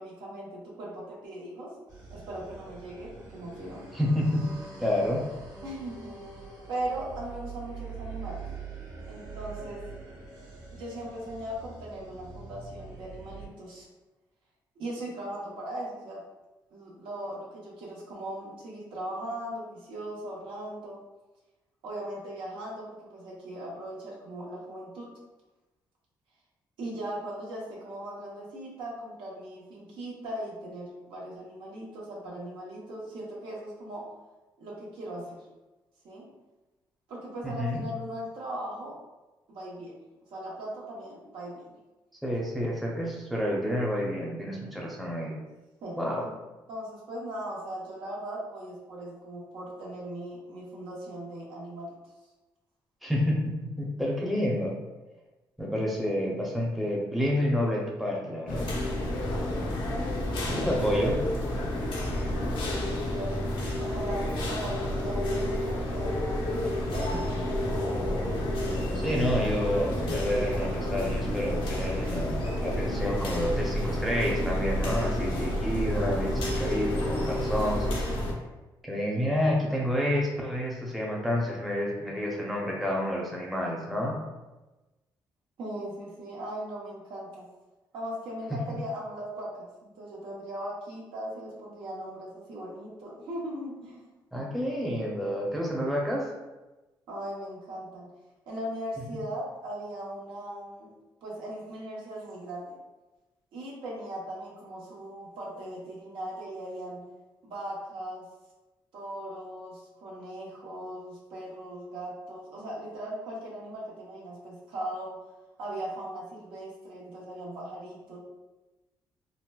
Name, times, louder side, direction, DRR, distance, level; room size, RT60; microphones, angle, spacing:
voice 1, 0.0-1.7 2.1-3.8 5.6-6.1 6.7-8.5 9.1-9.8 10.7-13.9 14.8-16.2 16.7-21.0 21.8-25.1 26.8-34.0 34.6-35.4 36.0-36.3 37.1-38.9 39.5-40.0 40.3-41.7 45.8-46.3 46.7-52.0 62.7-63.5 63.7-67.8 85.6-87.4 87.9-94.0 97.1-98.1 98.5-100.9 101.2-102.8 103.5-107.0 107.4-108.3 108.9-115.2 115.6-118.2, right 1 dB, 80° right, -4 dB, 0.9 m, -39 dB
sound 1, 1.9-13.5, right 5 dB, 50° right, 1.2 m, -44 dB
voice 2, 3.9-4.5 4.8-5.2 37.4-37.8 42.2-45.4 46.0-46.2 53.0-54.8 55.6-58.7 60.5-61.2 68.9-78.0 78.8-84.2 88.5-88.6 94.3-96.3, equal, ahead, -3 dB, 0.6 m, -29 dB
sound 2, 58.5-78.3, left 1 dB, 80° left, 0.7 m, -30 dB
3.9 x 2.1 x 2.2 m, 1.1 s
cardioid pair, 90°, 8 cm